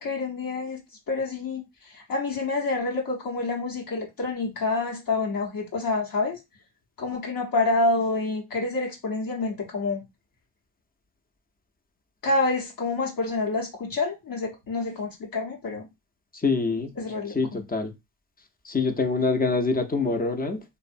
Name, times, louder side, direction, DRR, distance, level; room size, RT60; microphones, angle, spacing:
voice 1, 0.0-0.8 1.1-6.4 7.0-10.0 12.2-15.9 17.0-17.6, left 3 dB, 55° left, 0.9 m, -28 dB
voice 2, 16.3-16.9 17.3-17.9 18.6-20.6, left 3 dB, 20° left, 0.6 m, -25 dB
2.5 x 2.1 x 2.5 m
supercardioid pair, 50°, 41 cm